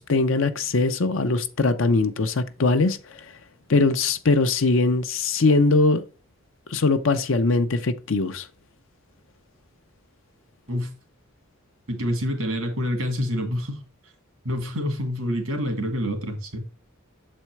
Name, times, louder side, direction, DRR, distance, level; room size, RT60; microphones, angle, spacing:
voice 1, 0.0-3.2 3.7-6.0 6.7-8.5, left 3 dB, 70° left, 0.7 m, -21 dB
voice 2, 11.9-13.8 14.4-16.6, equal, 85° right, 2.1 m, -27 dB
7.3 x 4.3 x 4.6 m
head